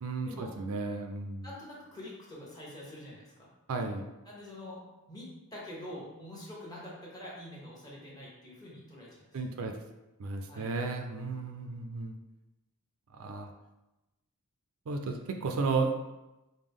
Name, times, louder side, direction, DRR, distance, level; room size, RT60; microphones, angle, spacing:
voice 1, 0.0-1.5 3.7-4.0 9.3-9.7 10.2-12.1 13.1-13.5 14.9-15.9, right 4 dB, 65° right, 5 dB, 0.4 m, -33 dB
voice 2, 1.4-3.5 4.2-4.8 5.1-9.7 10.5-10.7, left 1 dB, 15° left, -5 dB, 1.1 m, -46 dB
5.1 x 2.1 x 3.6 m, 1.0 s
head